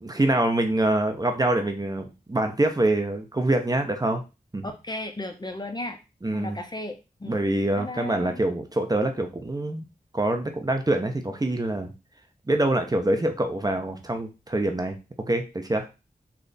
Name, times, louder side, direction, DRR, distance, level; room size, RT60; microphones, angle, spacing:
voice 1, 0.0-4.2 4.5-4.7 6.2-6.6 7.3-9.8 10.1-11.9 12.5-15.0 15.3-15.9, right 1 dB, 25° right, 5 dB, 0.7 m, -25 dB
voice 2, 4.6-6.0 6.3-7.4 7.8-8.4, left 1 dB, 25° left, 6 dB, 0.5 m, -35 dB
3.3 x 2.4 x 3.9 m, 0.28 s
wide cardioid pair, 90°, 16 cm